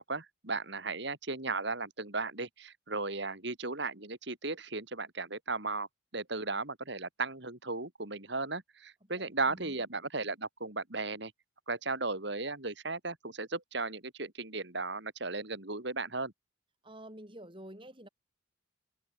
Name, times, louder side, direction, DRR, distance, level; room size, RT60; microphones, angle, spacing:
voice 1, 0.0-5.9 6.1-11.3 11.7-16.3, right 3 dB, 60° right, 3.1 m, -36 dB
voice 2, 9.0-9.8 16.8-18.1, right 1 dB, 25° right, 6.2 m, -49 dB
head